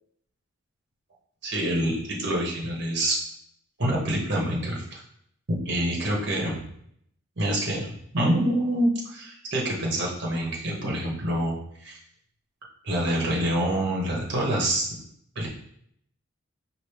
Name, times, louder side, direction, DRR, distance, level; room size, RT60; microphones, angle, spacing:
voice 1, 1.4-3.2 3.8-5.0 5.5-6.6 7.4-12.0 12.8-14.9 15.3-15.5, right 1 dB, 55° right, -2 dB, 1.1 m, -26 dB
4.9 x 2.5 x 3.3 m, 0.69 s
head